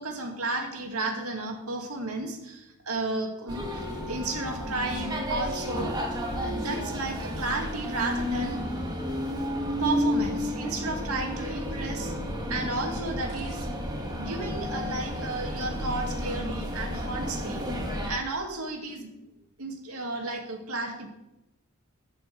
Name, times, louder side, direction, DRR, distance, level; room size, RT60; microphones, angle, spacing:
voice 1, 0.0-5.9 6.4-8.6 9.8-12.1 12.5-13.7 14.2-17.6 18.0-19.1 19.6-21.1, right 2 dB, 75° right, 2 dB, 2.3 m, -33 dB
sound 1, 3.5-18.1, equal, 20° right, 1.7 m, -32 dB
12.0 x 5.7 x 7.9 m, 0.94 s
head